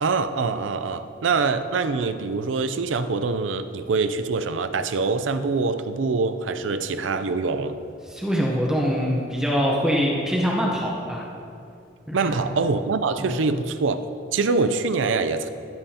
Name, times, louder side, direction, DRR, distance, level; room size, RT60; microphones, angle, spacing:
voice 1, 0.0-7.8 12.1-14.0 14.3-15.5, right 4 dB, 90° right, 10 dB, 0.5 m, -24 dB
voice 2, 8.1-11.2 12.1-12.4 13.2-13.4, equal, 5° right, -3 dB, 0.9 m, -24 dB
15.0 x 7.6 x 2.9 m, 2.5 s
head